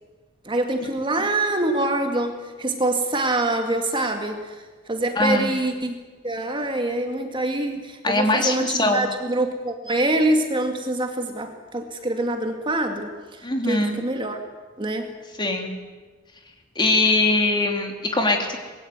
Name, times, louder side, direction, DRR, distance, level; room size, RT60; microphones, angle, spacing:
voice 1, 0.5-6.0 6.2-14.4 14.8-15.1, right 1 dB, 25° right, 5 dB, 2.2 m, -25 dB
voice 2, 5.1-5.5 8.0-9.1 13.4-14.0 15.4-15.7 16.7-18.6, left 2 dB, 25° left, 3 dB, 3.2 m, -22 dB
25.0 x 21.5 x 9.5 m, 1.3 s
head